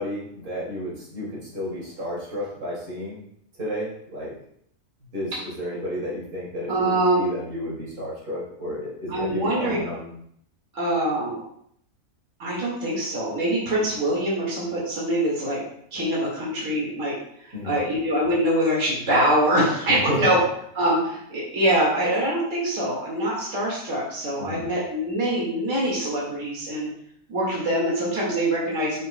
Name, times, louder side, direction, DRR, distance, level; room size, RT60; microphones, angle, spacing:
voice 1, 0.0-3.2 3.6-4.3 5.1-10.1 17.5-17.8 19.9-20.3 24.4-24.7, left 1 dB, 90° right, -6 dB, 3.0 m, -32 dB
voice 2, 6.7-7.2 9.1-9.8 10.7-11.4 12.4-15.6 15.9-17.1 17.6-20.4 20.7-26.9 27.3-29.1, right 1 dB, 60° right, -5 dB, 2.3 m, -24 dB
9.1 x 5.6 x 2.2 m, 0.68 s
omnidirectional pair, 1.5 m